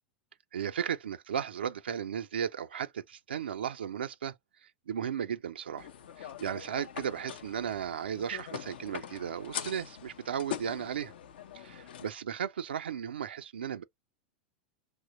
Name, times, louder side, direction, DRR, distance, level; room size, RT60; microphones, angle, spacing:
voice 1, 0.5-4.4 4.6-5.9 6.2-11.1 11.5-13.8, right 8 dB, 90° right, 0.3 m, -35 dB
sound 1, 5.8-12.1, left 9 dB, 75° left, 0.5 m, -43 dB
3.0 x 2.0 x 3.9 m
hypercardioid pair, 105°, 5 cm